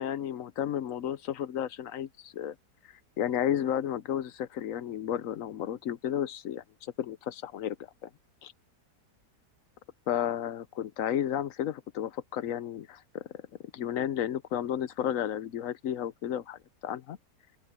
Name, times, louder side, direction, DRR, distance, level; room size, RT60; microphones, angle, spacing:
voice 1, 0.0-2.5 3.2-7.8 8.0-8.1 8.4-8.5 10.1-13.4 13.7-17.2, left 10 dB, 60° left, 0.9 m, -32 dB
open air
omnidirectional pair, 1.8 m